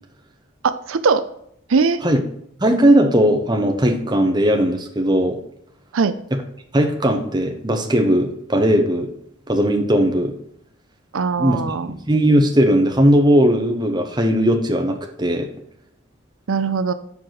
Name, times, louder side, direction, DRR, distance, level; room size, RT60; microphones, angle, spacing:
voice 1, 0.6-1.2 1.7-2.0 5.9-6.2 11.1-11.9 16.5-16.9, right 5 dB, 85° right, 11 dB, 0.5 m, -20 dB
voice 2, 2.6-5.4 6.7-9.1 9.5-10.3 11.4-11.6 11.9-15.5, equal, 20° right, 3 dB, 1.0 m, -18 dB
7.1 x 4.9 x 5.9 m, 0.71 s
head